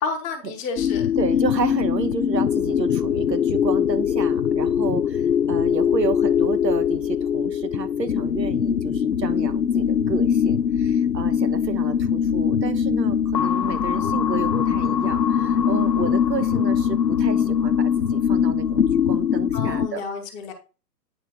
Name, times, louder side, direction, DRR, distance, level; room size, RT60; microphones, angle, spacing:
voice 1, 0.0-1.5 19.5-20.5, left 4 dB, 15° left, 4 dB, 1.0 m, -31 dB
sound 1, 0.8-19.9, left 8 dB, 85° left, 0.7 m, -22 dB
voice 2, 1.2-20.0, right 5 dB, 80° right, 8 dB, 1.1 m, -31 dB
9.2 x 3.3 x 5.5 m, 0.33 s
figure-of-eight pair, 125°, 49 cm